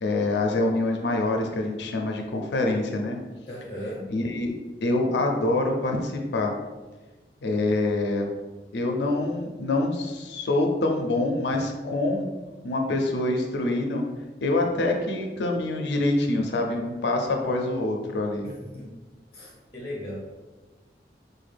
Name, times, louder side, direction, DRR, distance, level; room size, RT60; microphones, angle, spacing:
voice 1, 0.0-3.2 4.1-4.5 4.8-6.5 7.4-8.3 8.7-12.3 12.6-14.0 14.4-18.5, left 2 dB, 80° left, 2 dB, 0.5 m, -25 dB
voice 2, 3.5-4.0 18.4-18.9 19.3-20.2, left 1 dB, 30° left, -5 dB, 0.7 m, -37 dB
4.2 x 2.2 x 3.3 m, 1.2 s
head